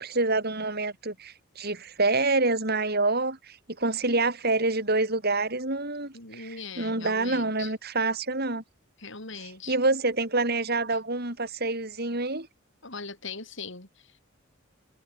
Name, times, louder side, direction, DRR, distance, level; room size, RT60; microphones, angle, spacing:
voice 1, 0.0-6.5 6.8-8.6 9.7-12.5, right 3 dB, 50° right, 6.8 m, -27 dB
voice 2, 6.1-7.7 9.0-9.8 10.9-11.0 12.8-14.2, left 4 dB, 65° left, 6.1 m, -40 dB
head